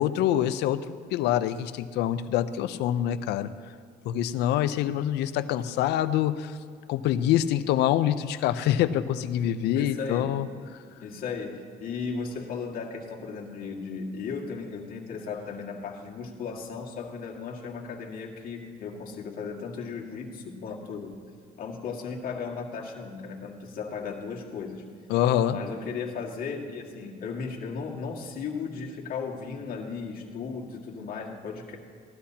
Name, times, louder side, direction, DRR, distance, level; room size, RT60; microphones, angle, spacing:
voice 1, 0.0-3.5 4.0-6.6 6.9-10.5 25.1-25.6, left 11 dB, 85° left, 13 dB, 0.6 m, -25 dB
voice 2, 9.7-10.4 11.0-21.3 21.6-24.8 25.5-31.8, left 5 dB, 60° left, -1 dB, 1.9 m, -36 dB
18.0 x 13.0 x 2.9 m, 2.2 s
cardioid pair, 110°, 17 cm